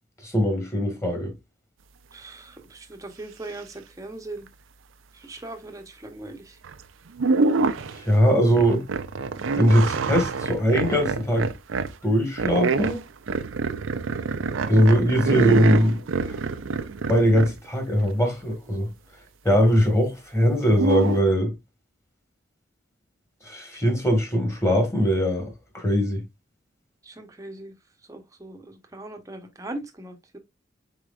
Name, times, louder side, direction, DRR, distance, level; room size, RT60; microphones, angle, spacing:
voice 1, 0.2-1.3 8.0-8.9 9.6-11.5 12.0-13.0 14.7-16.0 17.1-18.9 19.4-21.5 23.4-26.2, equal, 15° left, 1.7 m, -21 dB
voice 2, 2.1-4.5 5.1-6.6 27.0-27.7 28.1-30.4, right 2 dB, 15° right, 0.8 m, -39 dB
sound 1, 6.6-6.8 7.2-8.0 8.6-11.9 12.4-17.6 20.7-21.2, right 4 dB, 80° right, 0.5 m, -26 dB
4.9 x 4.3 x 2.4 m
head